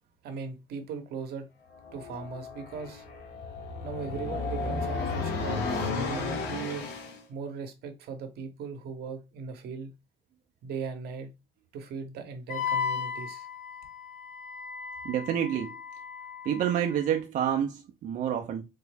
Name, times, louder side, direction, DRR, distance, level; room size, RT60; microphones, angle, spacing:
voice 1, 0.2-1.5 1.9-3.0 3.8-6.9 7.3-9.9 10.6-11.3 11.7-13.5, right 5 dB, 70° right, 0.8 m, -38 dB
sound 1, 1.7-7.2, left 4 dB, 75° left, 1.0 m, -33 dB
Wind instrument woodwind instrument, 12.5-17.1, left 7 dB, 50° left, 0.7 m, -36 dB
voice 2, 15.0-15.7 16.4-18.6, right 9 dB, 50° right, 0.4 m, -28 dB
3.5 x 2.0 x 3.3 m
cardioid pair, 110°, 17 cm